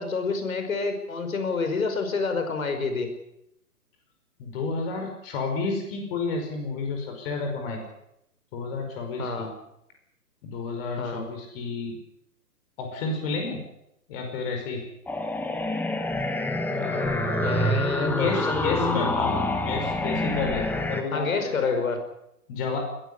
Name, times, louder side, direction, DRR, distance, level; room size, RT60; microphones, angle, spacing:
voice 1, 0.0-3.1 9.2-9.5 11.0-11.3 17.4-19.0 21.1-22.0, left 4 dB, 65° left, 7 dB, 5.5 m, -28 dB
voice 2, 4.4-7.8 8.5-9.5 10.4-12.0 12.8-13.6 14.1-14.8 16.7-21.8 22.5-22.8, left 3 dB, 35° left, 3 dB, 5.2 m, -31 dB
sound 1, 15.1-21.0, left 1 dB, 5° left, 1.5 m, -27 dB
21.0 x 15.0 x 10.0 m, 0.83 s
figure-of-eight pair, 120°, 45 cm